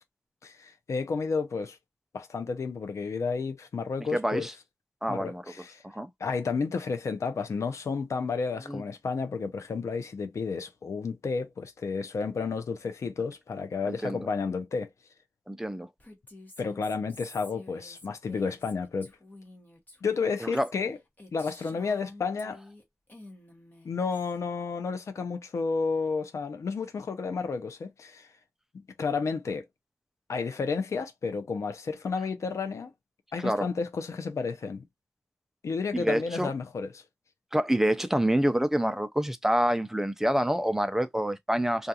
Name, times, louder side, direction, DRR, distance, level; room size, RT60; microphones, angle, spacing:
voice 1, 0.4-1.8 2.1-4.5 5.1-5.8 6.2-14.9 16.6-19.1 20.0-21.0 21.3-22.6 23.8-28.3 29.0-29.6 30.3-32.9 33.3-34.8 35.6-37.0, left 5 dB, 80° left, 0.5 m, -31 dB
voice 2, 4.1-4.5 5.0-5.4 5.8-6.1 8.7-8.8 13.8-14.3 15.5-15.9 20.4-20.7 33.4-33.7 35.9-36.5 37.5-41.9, equal, 10° right, 0.4 m, -27 dB
Female speech woman speaking, 16.0-22.8 23.1-24.4, left 1 dB, 35° left, 1.0 m, -50 dB
2.4 x 2.3 x 2.7 m
wide cardioid pair, 75°, 5 cm